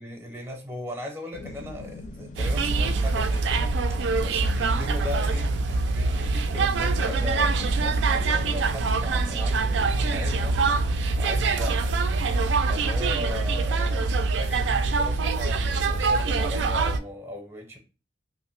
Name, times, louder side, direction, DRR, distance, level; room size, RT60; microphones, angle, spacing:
voice 1, 0.0-10.6 10.9-11.9 12.7-17.8, left 1 dB, 15° right, 0.6 m, -38 dB
sound 1, 1.3-14.3, left 2 dB, 45° left, 0.4 m, -42 dB
sound 2, 2.4-17.0, right 3 dB, 75° right, 0.4 m, -24 dB
2.9 x 2.7 x 3.0 m
head